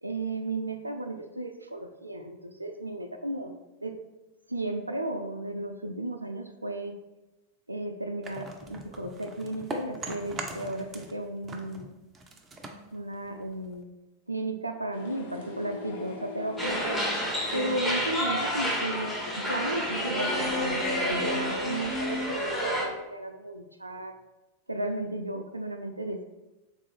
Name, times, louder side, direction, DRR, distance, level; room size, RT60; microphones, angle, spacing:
voice 1, 0.0-3.5 3.8-4.0 4.5-7.0 7.7-11.9 12.9-13.8 14.3-17.0 17.5-24.1 24.7-26.2, right 1 dB, 85° right, 6 dB, 0.3 m, -34 dB
sound 1, 8.2-11.2 11.4-13.8, right 2 dB, 20° right, 0.4 m, -40 dB
sound 2, 14.9-22.3, left 2 dB, 55° left, 0.6 m, -38 dB
sound 3, 16.6-22.8, equal, 5° left, 0.9 m, -30 dB
3.6 x 2.4 x 3.4 m, 1.0 s
figure-of-eight pair, 90°, 0 cm